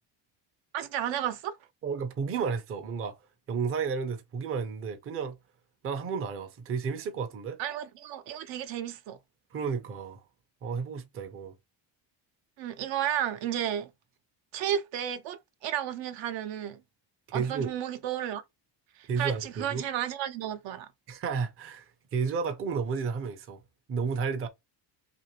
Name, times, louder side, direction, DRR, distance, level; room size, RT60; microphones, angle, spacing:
voice 1, 0.7-1.6 7.6-9.2 12.6-13.9 14.5-16.8 17.3-18.4 19.0-20.9, right 10 dB, 75° right, 0.7 m, -33 dB
voice 2, 1.8-3.2 3.5-5.4 5.8-7.6 9.5-10.2 10.6-11.5 17.3-17.7 19.1-19.8 21.1-23.6 23.9-24.5, right 5 dB, 30° right, 0.5 m, -32 dB
2.8 x 2.5 x 2.8 m
cardioid pair, 170°, 46 cm